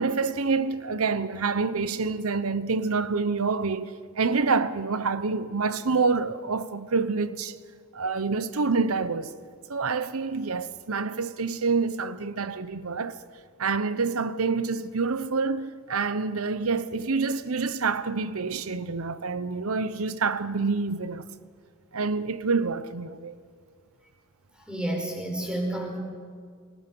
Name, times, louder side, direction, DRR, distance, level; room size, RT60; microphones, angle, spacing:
voice 1, 0.0-3.9 4.2-7.5 7.9-9.3 9.7-13.2 13.6-21.3 21.9-23.4, right 4 dB, 80° right, 0.9 m, -27 dB
voice 2, 24.7-26.0, right 1 dB, 5° right, 5.0 m, -30 dB
28.5 x 20.5 x 5.4 m
head